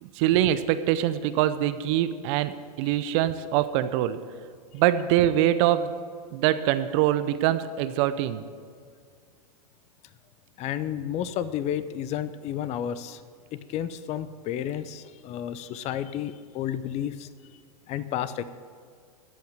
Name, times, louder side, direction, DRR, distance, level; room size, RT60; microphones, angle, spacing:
voice 1, 0.0-4.2 4.7-6.0 6.3-8.4, right 12 dB, 50° right, 13 dB, 0.7 m, -24 dB
voice 2, 10.6-13.2 13.5-17.3 17.9-18.5, left 10 dB, 35° left, 14 dB, 0.6 m, -31 dB
14.0 x 5.7 x 8.9 m, 2.1 s
hypercardioid pair, 105°, 20 cm